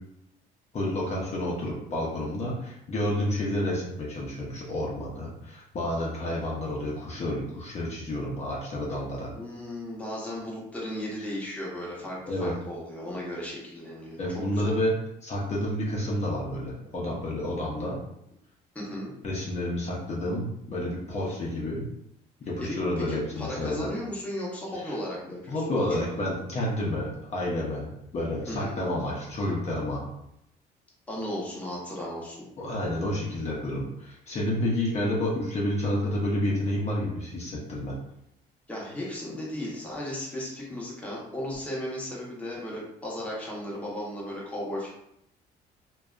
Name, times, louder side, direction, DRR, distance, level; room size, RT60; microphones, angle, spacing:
voice 1, 0.7-9.3 12.3-12.5 14.2-18.0 19.2-21.8 22.4-23.9 24.8-24.9 25.5-30.1 32.6-38.0, left 1 dB, 40° left, -4 dB, 0.7 m, -30 dB
voice 2, 9.3-14.7 18.7-19.1 22.6-25.9 28.5-28.8 31.1-32.5 38.7-44.9, left 1 dB, 10° left, -5 dB, 0.8 m, -35 dB
2.6 x 2.2 x 2.4 m, 0.79 s
cardioid pair, 110°, 17 cm